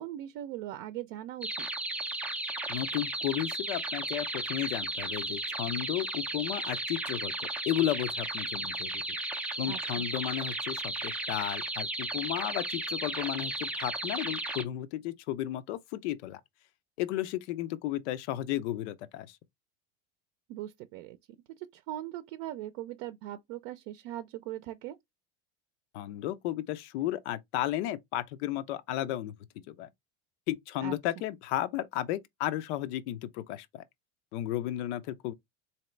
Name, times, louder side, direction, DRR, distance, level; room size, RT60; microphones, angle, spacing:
voice 1, 0.0-1.7 9.6-10.1 20.5-21.2 21.6-25.0 30.8-31.0, right 13 dB, 65° right, 0.6 m, -40 dB
sound 1, 1.4-14.6, right 2 dB, 5° right, 0.4 m, -35 dB
voice 2, 2.7-9.0 9.6-16.4 17.0-19.4 25.9-29.9 30.5-33.8 34.3-35.3, left 13 dB, 85° left, 0.6 m, -34 dB
3.9 x 2.9 x 3.2 m
cardioid pair, 145°, 33 cm